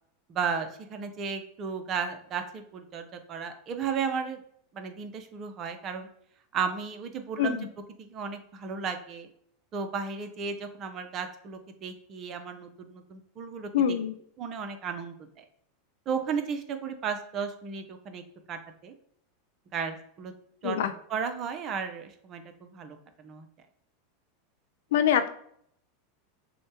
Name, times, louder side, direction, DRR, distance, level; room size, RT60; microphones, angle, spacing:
voice 1, 0.3-4.4 4.7-6.1 6.5-7.7 8.0-9.3 9.7-13.7 14.4-15.4 16.1-18.2 18.5-18.9 19.7-20.3 20.6-20.8 21.1-23.5, right 6 dB, 40° right, 7 dB, 0.7 m, -34 dB
voice 2, 13.7-14.1 20.6-20.9 24.9-25.3, left 9 dB, 70° left, 9 dB, 0.4 m, -24 dB
6.3 x 2.2 x 2.9 m, 0.66 s
hypercardioid pair, 95°, 0 cm